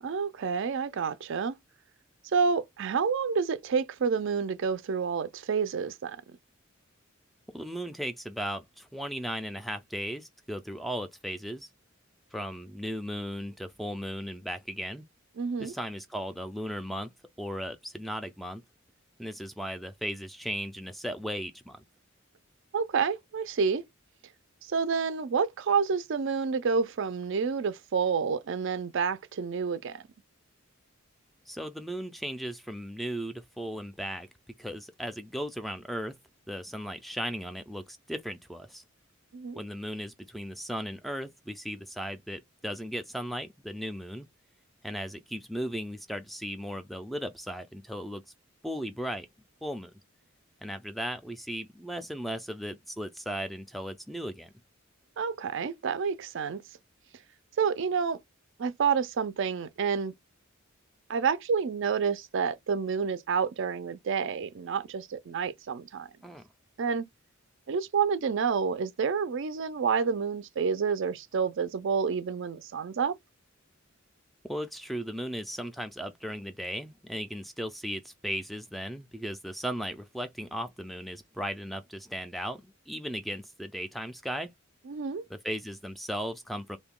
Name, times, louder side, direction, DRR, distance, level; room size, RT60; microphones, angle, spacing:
voice 1, 0.0-1.5 2.3-6.2 15.4-15.7 22.7-23.8 24.7-30.0 39.3-39.6 55.2-56.6 57.6-58.2 58.6-60.1 61.1-66.1 66.8-67.0 67.7-73.2 84.9-85.2, right 6 dB, 65° right, 0.4 m, -29 dB
voice 2, 7.5-11.7 12.3-15.0 15.6-18.6 19.2-21.8 31.5-34.3 34.6-36.2 36.5-38.8 39.6-44.3 44.8-48.2 48.6-49.3 49.6-49.9 50.6-54.5 66.2-66.4 74.4-84.5 85.3-86.8, equal, ahead, 0.3 m, -36 dB
2.7 x 2.2 x 3.6 m
head